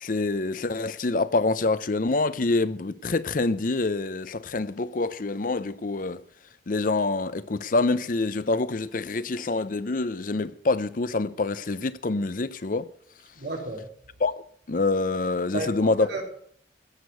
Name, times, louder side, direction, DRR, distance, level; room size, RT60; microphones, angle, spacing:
voice 1, 0.0-6.2 6.7-12.9 14.2-14.3 14.7-16.1, left 3 dB, 50° left, 0.6 m, -26 dB
voice 2, 13.4-13.8 15.5-16.2, right 2 dB, 70° right, 4.0 m, -32 dB
16.0 x 6.6 x 9.3 m
head